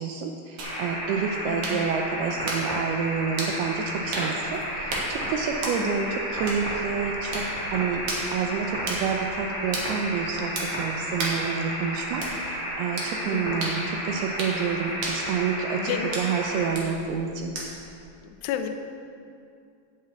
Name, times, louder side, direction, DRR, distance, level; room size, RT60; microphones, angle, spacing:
voice 1, 0.0-17.5, right 6 dB, 85° right, 3 dB, 2.3 m, -29 dB
sound 1, 0.6-16.7, equal, 25° right, 1.7 m, -32 dB
sound 2, 0.6-18.0, right 2 dB, 55° right, 2.0 m, -37 dB
voice 2, 1.4-1.8 5.8-6.1 13.3-13.6 15.7-16.2 18.2-18.7, left 9 dB, 80° left, 6 dB, 2.6 m, -32 dB
9.1 x 6.7 x 8.1 m, 2.5 s
omnidirectional pair, 5.1 m